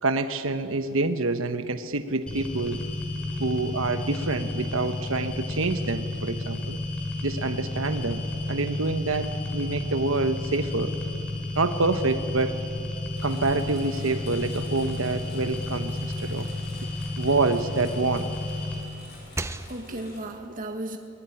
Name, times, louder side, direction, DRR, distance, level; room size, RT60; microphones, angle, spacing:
voice 1, 0.0-2.8 3.4-6.8 7.2-8.2 8.5-10.9 11.5-12.6 13.2-16.5 17.2-18.3 19.9-20.0, right 3 dB, 70° right, 9 dB, 1.1 m, -27 dB
sound 1, 2.3-18.8, left 2 dB, 5° left, 4.0 m, -32 dB
Engine, 13.1-20.2, left 2 dB, 55° left, 6.2 m, -50 dB
sound 2, 15.0-18.0 18.5-20.3, right 2 dB, 15° right, 0.7 m, -41 dB
voice 2, 19.2-21.0, right 1 dB, 40° right, 3 dB, 1.8 m, -36 dB
23.0 x 20.0 x 10.0 m, 2.6 s
head